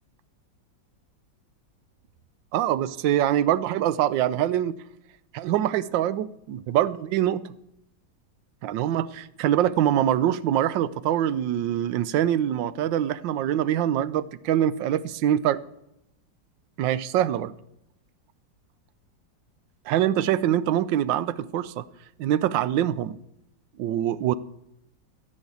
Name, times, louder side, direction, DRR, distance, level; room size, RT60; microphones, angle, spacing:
voice 1, 2.5-4.7 5.3-7.5 8.6-15.6 16.8-17.5 19.9-21.9 22.2-23.2 23.8-24.3, right 11 dB, 80° right, 17 dB, 1.3 m, -24 dB
14.5 x 6.5 x 8.2 m, 0.81 s
omnidirectional pair, 2.0 m